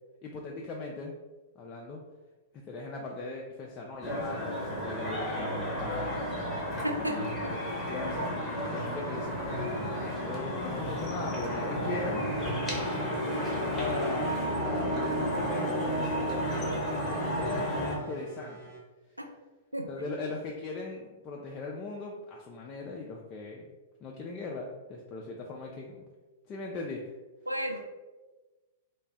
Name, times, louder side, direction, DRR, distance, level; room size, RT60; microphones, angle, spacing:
voice 1, 0.2-1.1 1.6-2.0 2.5-6.3 7.0-8.3 8.7-12.3 12.6-13.2 13.6-18.6 19.9-23.7 24.0-26.0 26.5-27.0, left 3 dB, 30° left, -1 dB, 0.3 m, -39 dB
sound 1, 4.0-18.0, equal, 10° left, 0.8 m, -32 dB
voice 2, 6.8-7.5 19.7-19.9 27.5-27.8, equal, 90° right, 1 dB, 0.4 m, -32 dB
sound 2, 8.8-18.8, right 2 dB, 50° right, 1.0 m, -48 dB
2.4 x 2.2 x 3.3 m, 1.2 s
figure-of-eight pair, 105°, 0 cm